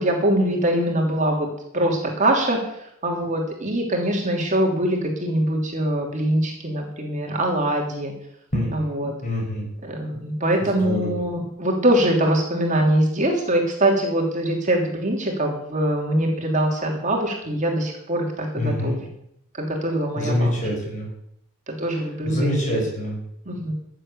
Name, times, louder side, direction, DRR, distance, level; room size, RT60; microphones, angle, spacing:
voice 1, 0.0-1.5 1.7-2.6 3.0-8.1 8.7-9.1 9.8-19.0 19.6-20.6 21.7-22.8 23.5-23.7, right 1 dB, 35° right, 1 dB, 3.0 m, -23 dB
voice 2, 9.2-9.7 10.6-11.2 18.6-19.0 20.2-21.1 22.3-23.2, left 1 dB, 35° left, 0 dB, 5.7 m, -25 dB
14.5 x 7.7 x 8.4 m, 0.75 s
head